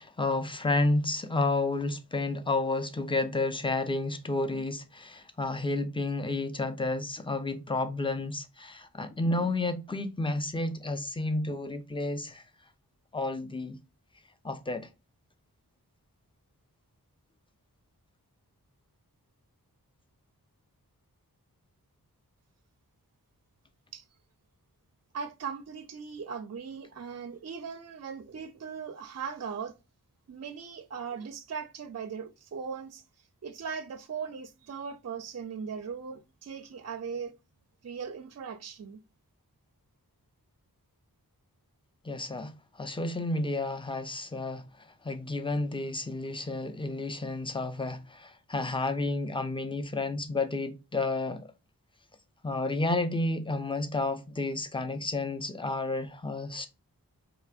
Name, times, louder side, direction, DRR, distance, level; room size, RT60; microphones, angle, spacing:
voice 1, 0.0-12.4 13.1-13.8 14.4-14.9 42.0-42.5 42.8-44.6 45.0-51.5 52.4-56.7, left 2 dB, 15° left, 0.5 m, -31 dB
voice 2, 25.1-29.7 30.3-33.0 33.4-37.4 37.8-39.0, right 6 dB, 45° right, 0.4 m, -39 dB
4.5 x 2.9 x 2.3 m
wide cardioid pair, 65°, 37 cm